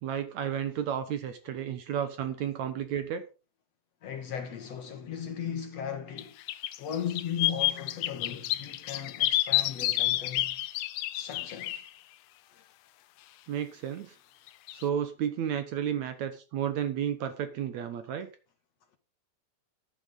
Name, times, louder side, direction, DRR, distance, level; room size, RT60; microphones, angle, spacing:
voice 1, 0.0-3.2 13.5-14.1 14.7-18.3, right 9 dB, 65° right, 2.1 m, -32 dB
voice 2, 4.0-6.4 6.8-10.6 11.1-11.8 12.5-12.6, left 8 dB, 60° left, 2.0 m, -37 dB
sound 1, 6.2-6.3 6.5-11.8 14.7-14.8, left 16 dB, 85° left, 2.5 m, -29 dB
14.0 x 9.4 x 3.8 m
omnidirectional pair, 4.0 m